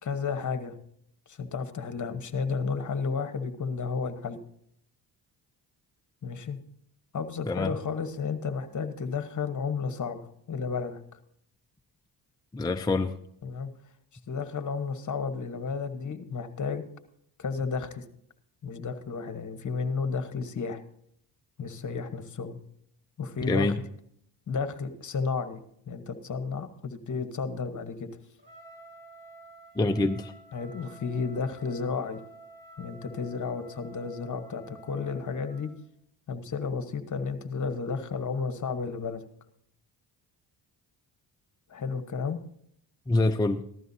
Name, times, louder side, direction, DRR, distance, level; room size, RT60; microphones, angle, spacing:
voice 1, 0.0-0.7 1.3-4.4 6.2-6.6 7.1-11.0 13.4-13.7 14.3-16.8 17.4-18.0 18.6-20.8 21.6-22.6 23.2-23.7 24.5-25.6 25.9-28.1 30.5-32.2 32.8-35.7 36.3-39.2 41.7-42.4, left 5 dB, 40° left, 1.3 m, -32 dB
voice 2, 12.5-13.2 23.4-23.8 29.8-30.3 43.1-43.6, left 2 dB, 10° left, 0.5 m, -25 dB
Trumpet, 28.4-35.7, right 2 dB, 25° right, 3.8 m, -51 dB
15.5 x 12.5 x 2.8 m
cardioid pair, 80°, 43 cm